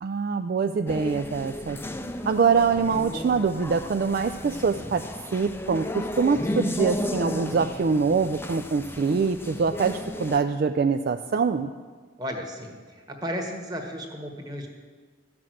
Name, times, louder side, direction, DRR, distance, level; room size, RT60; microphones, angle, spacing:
voice 1, 0.0-1.8 2.3-5.0 5.3-11.7, right 5 dB, 50° right, 8 dB, 0.3 m, -24 dB
sound 1, 0.9-10.4, left 1 dB, 10° left, 0.5 m, -34 dB
voice 2, 12.2-14.7, equal, 20° right, 2 dB, 1.4 m, -34 dB
13.5 x 6.0 x 7.7 m, 1.5 s
head